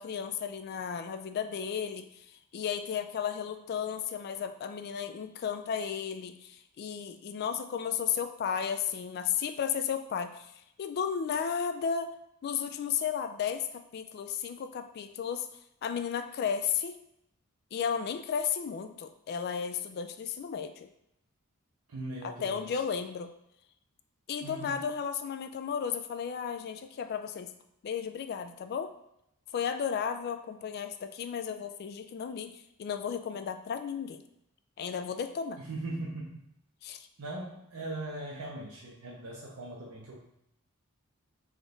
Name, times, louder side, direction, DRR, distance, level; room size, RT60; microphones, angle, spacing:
voice 1, 0.0-2.1 2.5-10.5 10.8-12.1 12.4-13.7 13.9-15.5 15.8-17.0 17.7-20.9 22.2-23.3 24.3-27.5 27.8-28.9 29.5-32.5 32.8-34.2 34.8-35.6 36.8-37.0, left 7 dB, 45° left, 9 dB, 0.3 m, -34 dB
voice 2, 21.9-22.7 24.4-24.8 35.6-36.4 37.2-40.2, right 2 dB, 85° right, -4 dB, 0.7 m, -39 dB
3.6 x 3.5 x 3.9 m, 0.78 s
head